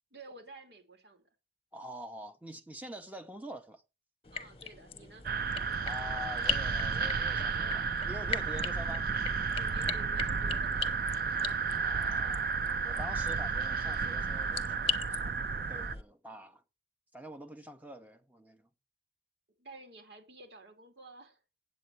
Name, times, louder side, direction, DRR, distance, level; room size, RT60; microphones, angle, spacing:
voice 1, 0.1-1.3 4.3-5.3 9.6-11.0 19.6-21.4, right 2 dB, 75° right, 2.9 m, -52 dB
voice 2, 1.7-3.8 5.8-9.1 11.7-16.6 17.1-18.7, equal, 10° right, 1.1 m, -46 dB
sound 1, 4.2-16.0, left 6 dB, 30° left, 0.9 m, -40 dB
sound 2, 5.2-15.9, right 5 dB, 55° right, 0.5 m, -32 dB
8.4 x 8.3 x 6.3 m
head